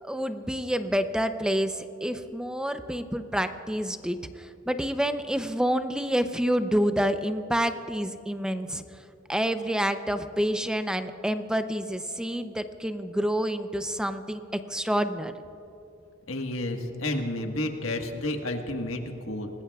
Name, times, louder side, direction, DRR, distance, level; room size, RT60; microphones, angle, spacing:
voice 1, 0.0-8.8 9.3-15.3, equal, 5° right, 9 dB, 0.5 m, -28 dB
voice 2, 16.3-19.5, left 1 dB, 80° left, 3 dB, 1.5 m, -31 dB
27.0 x 20.0 x 2.4 m, 2.9 s
head